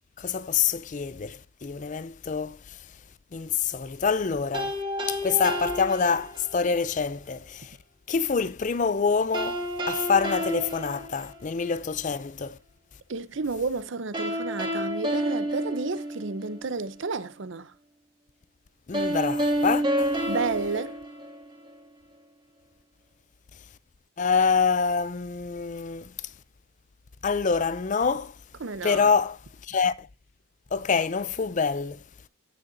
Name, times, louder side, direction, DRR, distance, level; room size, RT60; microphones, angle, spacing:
voice 1, 0.2-2.6 3.3-4.8 5.1-7.8 8.1-12.6 18.9-20.2 24.2-26.1 27.2-28.3 28.8-29.4 29.7-30.1 30.7-32.0, left 5 dB, 35° left, 0.4 m, -26 dB
sound 1, 4.5-6.7 9.3-11.8 14.1-16.7 18.9-21.8, equal, 25° right, 2.3 m, -29 dB
voice 2, 13.1-17.7 20.2-21.0 28.6-29.1, right 4 dB, 60° right, 0.6 m, -31 dB
17.0 x 6.6 x 2.6 m
head